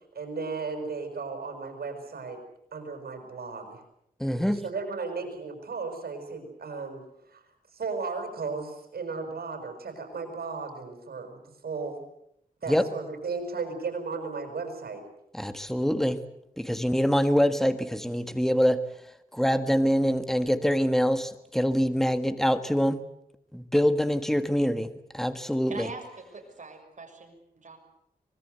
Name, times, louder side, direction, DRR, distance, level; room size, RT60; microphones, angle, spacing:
voice 1, 0.1-2.4 2.7-3.8 4.6-7.0 7.3-7.4 7.7-12.0 12.6-15.0, right 4 dB, 90° right, 5 dB, 6.4 m, -35 dB
voice 2, 4.2-4.6 12.7-12.9 15.3-16.2 16.6-18.8 19.3-23.0 23.5-25.9, equal, ahead, 10 dB, 1.6 m, -25 dB
voice 3, 25.7-27.8, right 4 dB, 50° right, 3 dB, 6.6 m, -43 dB
25.0 x 21.0 x 8.0 m, 0.75 s
wide cardioid pair, 105°, 16 cm